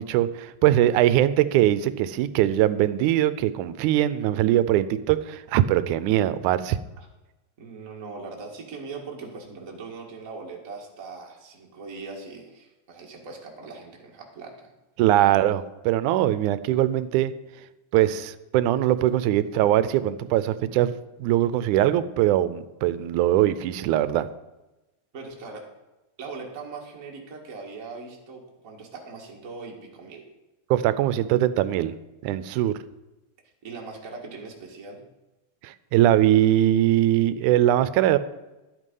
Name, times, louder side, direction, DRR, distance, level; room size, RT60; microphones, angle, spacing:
voice 1, 0.0-6.8 15.0-17.3 17.9-20.9 21.2-24.3 30.7-31.9 32.2-32.7 35.6-38.2, right 13 dB, 85° right, 14 dB, 2.0 m, -21 dB
voice 2, 7.6-14.7 25.1-25.6 26.2-30.2 33.6-35.0, right 4 dB, 30° right, -1 dB, 1.8 m, -40 dB
11.5 x 8.2 x 5.4 m, 1.0 s
omnidirectional pair, 3.4 m